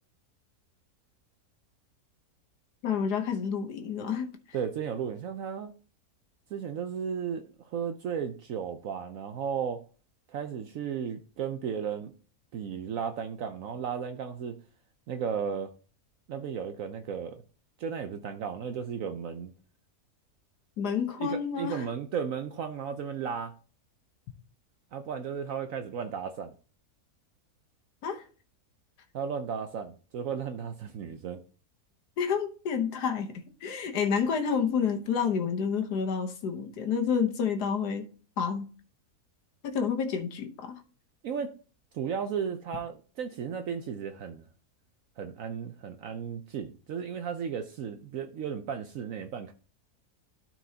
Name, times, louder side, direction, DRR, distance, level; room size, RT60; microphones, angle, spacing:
voice 1, 2.8-4.3 20.8-21.9 28.0-28.2 32.2-33.3 33.6-38.1 38.4-38.7 39.6-40.8, left 6 dB, 90° left, 1.6 m, -29 dB
voice 2, 4.5-5.7 6.5-9.8 10.3-12.1 12.5-14.6 15.1-15.7 16.3-17.4 17.8-19.5 21.2-23.5 24.9-26.5 29.1-31.4 41.2-41.5 41.9-44.4 45.2-49.5, right 7 dB, 65° right, 0.9 m, -34 dB
13.0 x 4.6 x 2.8 m
omnidirectional pair, 1.7 m